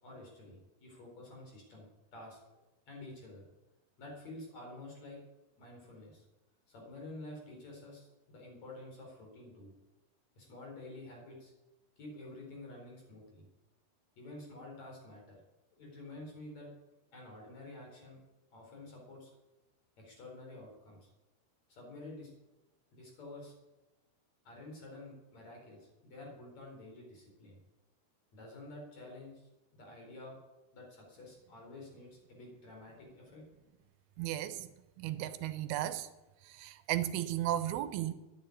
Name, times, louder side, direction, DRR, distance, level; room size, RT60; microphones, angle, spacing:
voice 1, 0.0-2.4 2.9-3.4 4.0-5.2 5.6-6.2 6.7-9.7 10.4-11.5 12.0-13.4 14.2-15.4 15.7-16.7 17.1-18.2 18.5-19.3 20.0-21.1 21.7-22.3 22.9-23.5 24.4-27.6 28.3-30.4 30.7-33.4, left 2 dB, 40° left, 5.0 m, -50 dB
voice 2, 34.2-34.7 35.0-36.1 36.5-38.1, right 13 dB, 80° right, 2.4 m, -35 dB
10.5 x 9.3 x 9.6 m
omnidirectional pair, 4.9 m